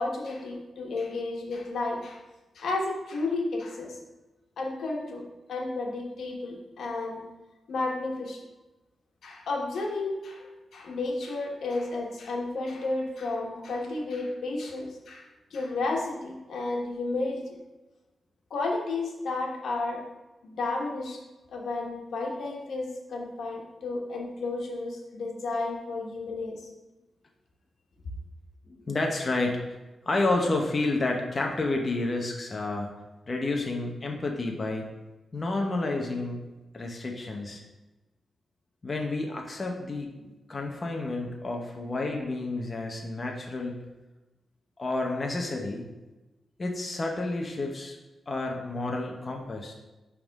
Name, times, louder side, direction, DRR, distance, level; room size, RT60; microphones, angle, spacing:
voice 1, 0.0-2.2 2.5-4.0 4.6-5.2 5.5-7.2 7.7-8.4 9.2-10.5 10.7-17.6 18.5-20.0 20.4-21.2 21.5-26.7, left 2 dB, 80° left, 0 dB, 1.3 m, -32 dB
voice 2, 28.7-29.6 30.1-32.9 33.3-34.9 35.3-36.4 36.7-37.6 38.8-43.8 44.8-45.9 46.6-48.0 48.3-49.7, left 2 dB, 30° left, 1 dB, 0.7 m, -30 dB
10.5 x 3.6 x 3.5 m, 1.1 s
wide cardioid pair, 155°, 0 cm